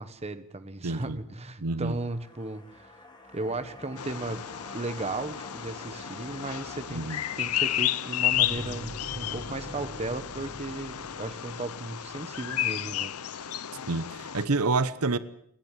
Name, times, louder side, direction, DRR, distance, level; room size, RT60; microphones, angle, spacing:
voice 1, 0.0-2.9 3.3-13.5, right 2 dB, 30° right, 11 dB, 1.4 m, -36 dB
voice 2, 0.8-1.2 1.6-1.9 6.9-7.2 13.9-15.2, right 3 dB, 85° right, 15 dB, 1.0 m, -28 dB
sound 1, 1.7-12.1 12.4-12.5, left 2 dB, 20° left, 2.9 m, -50 dB
Bird vocalization bird call bird song, 4.0-14.5, left 12 dB, 85° left, 0.8 m, -32 dB
sound 2, 8.3-12.1, equal, 60° left, 4.0 m, -43 dB
27.5 x 11.0 x 9.8 m, 0.70 s
head